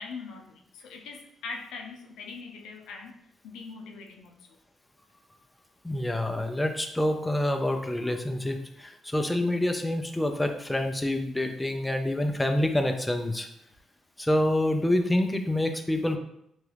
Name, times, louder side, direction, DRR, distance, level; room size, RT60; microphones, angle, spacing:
voice 1, 0.0-3.2 3.4-4.3, left 4 dB, 85° left, 2 dB, 0.4 m, -41 dB
voice 2, 5.8-13.5 14.2-16.2, left 1 dB, 10° left, 5 dB, 0.3 m, -27 dB
3.0 x 2.3 x 3.2 m, 0.75 s
cardioid pair, 90°, 0 cm